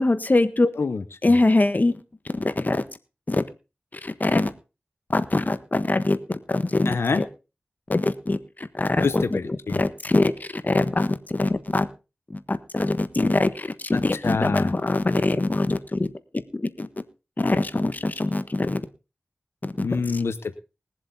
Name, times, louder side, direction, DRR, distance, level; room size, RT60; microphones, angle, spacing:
voice 1, 0.0-0.7 1.2-1.9 2.4-2.8 3.3-3.4 4.0-4.5 5.1-6.2 6.5-7.2 7.9-9.4 9.7-11.9 12.5-16.1 16.3-16.9 17.4-18.8 19.6-19.7 20.1-20.2, left 2 dB, 45° left, 11 dB, 1.4 m, -23 dB
voice 2, 0.8-1.4 6.8-7.2 9.0-9.8 14.2-14.7 19.8-20.6, left 4 dB, 90° left, 11 dB, 0.9 m, -26 dB
20.5 x 7.6 x 4.2 m, 0.30 s
cardioid pair, 40°, 4 cm